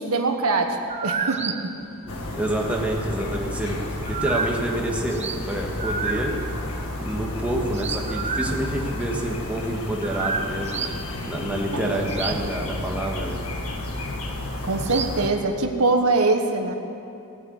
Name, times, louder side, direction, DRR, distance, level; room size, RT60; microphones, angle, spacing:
voice 1, 0.0-1.7 11.7-12.0 14.6-16.7, right 3 dB, 75° right, 5 dB, 1.2 m, -23 dB
sound 1, 0.9-2.8 3.2-5.5 5.8-9.1 9.6-9.7 10.0-11.0 11.4-12.5 12.7-13.2 13.9-14.1 14.8-15.3, right 5 dB, 30° right, 0.7 m, -30 dB
sound 2, 2.1-15.3, left 2 dB, 70° left, 1.6 m, -32 dB
voice 2, 2.1-3.8 4.1-6.3 7.0-10.9 11.3-13.4, right 1 dB, 5° right, -1 dB, 1.5 m, -28 dB
17.0 x 8.0 x 8.6 m, 2.6 s
head